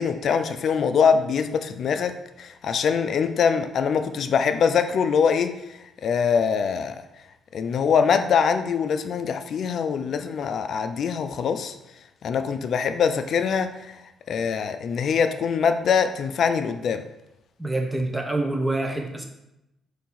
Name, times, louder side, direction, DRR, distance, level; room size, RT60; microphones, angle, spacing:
voice 1, 0.0-7.0 7.5-11.8 12.2-14.0 14.3-17.0, left 6 dB, 60° left, 9 dB, 0.3 m, -23 dB
voice 2, 17.6-19.2, right 2 dB, 10° right, 2 dB, 0.7 m, -26 dB
4.1 x 2.7 x 3.9 m, 0.89 s
cardioid pair, 90°, 0 cm